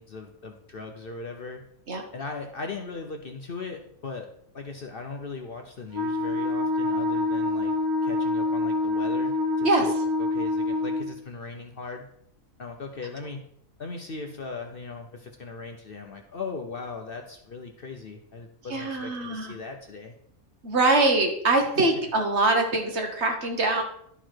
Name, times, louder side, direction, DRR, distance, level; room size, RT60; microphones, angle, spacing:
voice 1, 0.0-1.6 2.1-4.3 4.5-7.7 8.0-9.9 10.2-12.0 12.6-13.4 13.8-20.1 21.8-22.1, left 4 dB, 50° left, 4 dB, 0.8 m, -38 dB
Wind instrument woodwind instrument, 5.9-11.1, left 2 dB, 90° right, 1.8 m, -26 dB
voice 2, 18.7-19.5 20.6-23.8, right 2 dB, 55° right, 3 dB, 1.5 m, -23 dB
11.0 x 4.8 x 4.4 m, 0.69 s
omnidirectional pair, 1.5 m